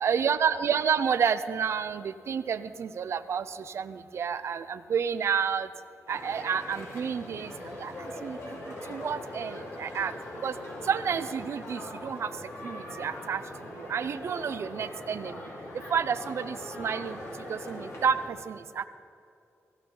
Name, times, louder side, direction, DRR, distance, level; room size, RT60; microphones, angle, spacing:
voice 1, 0.0-3.4 3.7-5.7 6.1-7.5 7.8-8.4 8.9-10.1 10.4-10.5 10.9-12.3 12.6-13.4 13.8-15.4 15.9-17.2 17.5-18.8, right 7 dB, 60° right, 12 dB, 0.6 m, -30 dB
sound 1, 6.1-18.3, left 1 dB, 65° left, 4.1 m, -41 dB
18.5 x 15.5 x 3.9 m, 2.6 s
wide cardioid pair, 150°, 5 cm